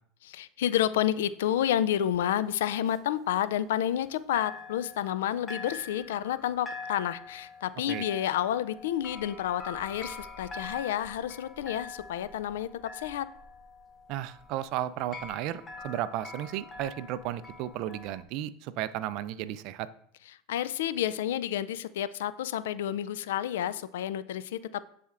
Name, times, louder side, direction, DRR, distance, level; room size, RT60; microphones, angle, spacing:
voice 1, 0.2-13.3 20.5-24.8, left 11 dB, 85° left, 16 dB, 0.3 m, -30 dB
sound 1, 2.1-4.1 4.3-18.2, left 3 dB, 25° left, 0.8 m, -45 dB
voice 2, 14.1-19.9, right 12 dB, 55° right, 15 dB, 0.3 m, -34 dB
10.5 x 4.2 x 2.5 m, 0.67 s
supercardioid pair, 120°, 0 cm